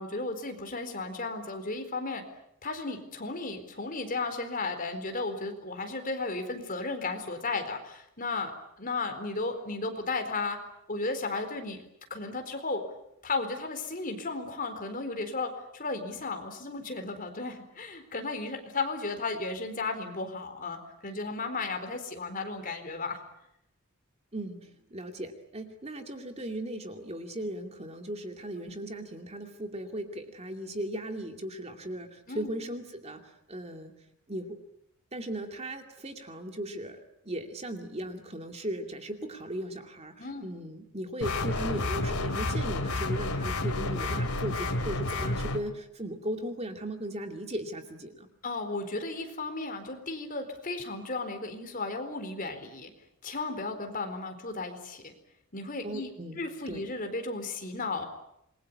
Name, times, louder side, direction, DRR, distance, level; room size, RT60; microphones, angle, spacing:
voice 1, 0.0-2.2 2.6-8.5 8.8-10.6 10.9-11.8 12.1-12.8 13.2-23.2 28.6-28.7 32.3-32.5 40.2-40.5 48.4-52.9 53.2-55.1 55.5-56.1 56.4-58.0, left 3 dB, 40° left, 6 dB, 4.2 m, -34 dB
voice 2, 24.3-33.9 34.3-34.6 35.1-48.3 55.8-56.8, right 1 dB, 30° right, 5 dB, 2.5 m, -37 dB
sound 1, 41.2-45.6, left 2 dB, 90° left, 2.7 m, -30 dB
27.5 x 22.0 x 8.5 m, 0.79 s
head